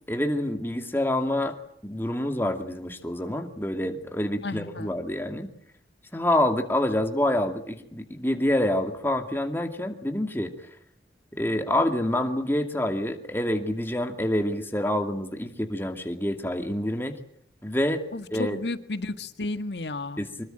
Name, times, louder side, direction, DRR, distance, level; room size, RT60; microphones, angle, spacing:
voice 1, 0.1-1.5 1.8-5.5 6.1-10.5 11.3-17.1 17.6-18.0 18.3-18.6 20.2-20.4, left 1 dB, 10° left, 5 dB, 2.4 m, -27 dB
voice 2, 4.4-4.9 18.1-20.3, left 2 dB, 75° left, 10 dB, 1.7 m, -33 dB
25.0 x 22.0 x 9.0 m, 0.69 s
head